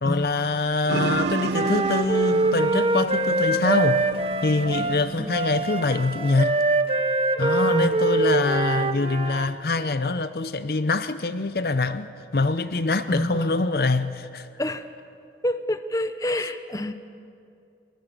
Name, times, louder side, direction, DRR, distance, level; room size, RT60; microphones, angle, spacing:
voice 1, 0.0-4.0 4.4-6.6 7.4-14.5, left 3 dB, 60° left, 0.6 m, -24 dB
sound 1, 0.9-6.2, right 4 dB, 80° right, 0.5 m, -32 dB
Wind instrument woodwind instrument, 1.0-9.5, right 2 dB, 35° right, 0.9 m, -24 dB
voice 2, 4.8-5.3 7.7-8.0 13.1-13.6 14.6-14.9 15.4-16.9, left 1 dB, 20° left, 0.8 m, -28 dB
22.5 x 21.0 x 6.6 m
head